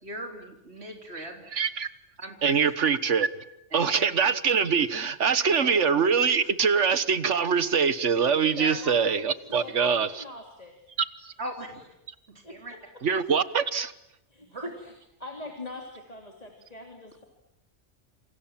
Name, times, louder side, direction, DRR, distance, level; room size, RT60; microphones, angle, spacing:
voice 1, 0.0-1.4 2.2-2.7 3.7-4.1 5.6-5.7 8.6-8.8 11.4-11.9 12.3-12.7 14.4-14.7, right 1 dB, 60° right, 3 dB, 4.2 m, -39 dB
voice 2, 1.5-1.9 2.4-3.3 3.7-10.1 13.0-13.9, right 6 dB, 75° right, 14 dB, 1.6 m, -23 dB
voice 3, 8.6-9.0 9.4-10.7 12.4-12.6 14.3-14.9 15.2-17.2, left 2 dB, 30° left, 3 dB, 3.4 m, -41 dB
28.0 x 28.0 x 7.5 m, 0.85 s
omnidirectional pair, 1.2 m